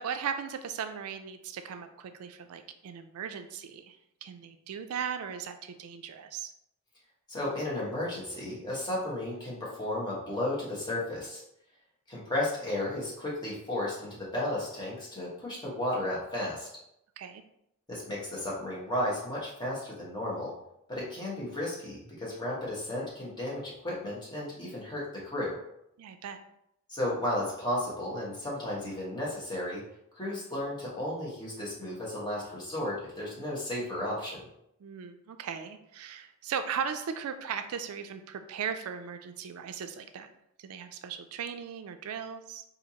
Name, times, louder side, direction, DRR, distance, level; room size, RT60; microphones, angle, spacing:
voice 1, 0.0-6.5 17.2-17.4 26.0-26.4 34.8-40.3 40.6-42.6, right 7 dB, 75° right, 8 dB, 0.3 m, -37 dB
voice 2, 7.3-11.4 12.1-16.7 17.9-20.5 20.9-25.6 26.9-29.8 30.1-34.4, left 1 dB, 20° left, -6 dB, 1.1 m, -34 dB
4.3 x 2.6 x 2.8 m, 0.78 s
head